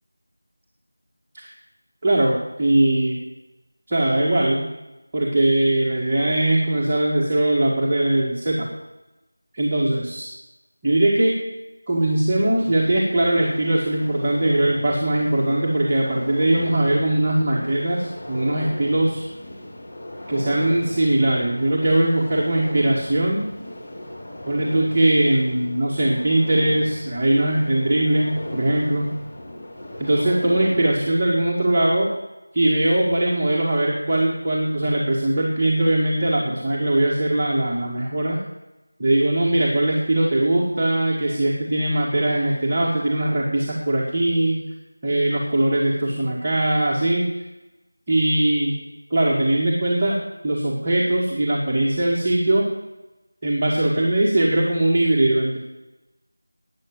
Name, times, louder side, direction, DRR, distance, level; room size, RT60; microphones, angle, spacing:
voice 1, 2.0-3.2 3.9-4.6 5.1-8.7 9.5-10.3 10.8-11.4 11.9-19.3 20.3-23.5 24.5-29.1 30.0-32.1 32.5-38.4 39.0-44.6 45.0-47.3 48.1-48.7 49.1-50.2 50.4-52.7 53.4-55.6, right 1 dB, 20° right, -5 dB, 1.9 m, -20 dB
sound 1, 12.3-31.2, left 1 dB, 30° left, 2.2 m, -37 dB
13.0 x 9.1 x 7.8 m, 1.0 s
figure-of-eight pair, 170°, 0 cm